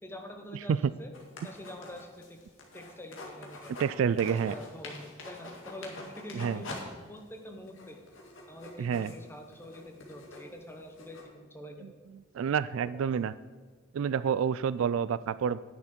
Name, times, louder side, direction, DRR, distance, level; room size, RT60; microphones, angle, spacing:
voice 1, 0.0-1.1 1.4-2.4 2.7-3.7 4.2-6.7 7.1-8.0 8.5-11.9 12.9-13.0, equal, 10° left, 4 dB, 1.1 m, -45 dB
sound 1, 1.1-3.9 4.2-6.8 7.2-7.3 7.7-11.2, left 2 dB, 70° left, 1.9 m, -45 dB
voice 2, 3.8-4.5 6.3-6.6 8.8-9.1 12.3-13.3 13.9-15.6, right 7 dB, 70° right, 16 dB, 0.3 m, -28 dB
9.8 x 9.6 x 4.4 m, 1.5 s
head